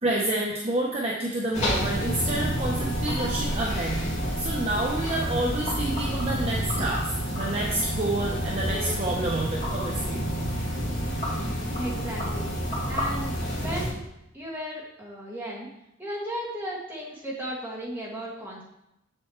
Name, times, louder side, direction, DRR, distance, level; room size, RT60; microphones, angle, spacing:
voice 1, 0.0-4.0 4.4-7.1 7.4-10.2 10.6-10.9, right 1 dB, 30° right, -3 dB, 0.8 m, -28 dB
sound 1, 1.5-13.9, equal, 35° left, 2.7 m, -29 dB
voice 2, 11.7-12.5 12.9-14.0 14.3-15.7 16.0-18.6, equal, 10° right, -7 dB, 2.2 m, -35 dB
7.5 x 6.9 x 3.2 m, 0.84 s
head